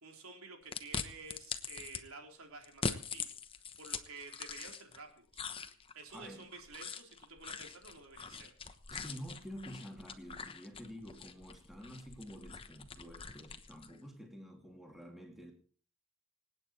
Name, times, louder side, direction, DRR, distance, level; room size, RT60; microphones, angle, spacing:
voice 1, 0.0-3.3 3.8-5.4 5.9-8.5, right 3 dB, 80° right, 3.7 m, -51 dB
sound 1, 0.7-2.0 2.6-5.0 5.3-14.0, left 5 dB, 25° left, 1.0 m, -43 dB
voice 2, 6.1-6.5 8.9-15.5, equal, ahead, 2.6 m, -49 dB
26.5 x 9.2 x 4.4 m
head